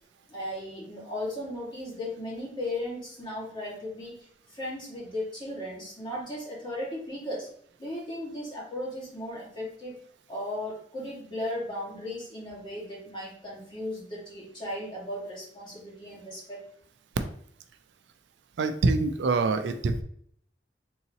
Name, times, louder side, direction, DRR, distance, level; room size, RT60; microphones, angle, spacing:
voice 1, 0.3-7.5 7.8-9.9 10.3-16.6, left 1 dB, 25° left, -5 dB, 1.5 m, -36 dB
voice 2, 18.6-20.0, right 3 dB, 80° right, 8 dB, 0.4 m, -25 dB
3.8 x 2.8 x 2.8 m, 0.64 s
head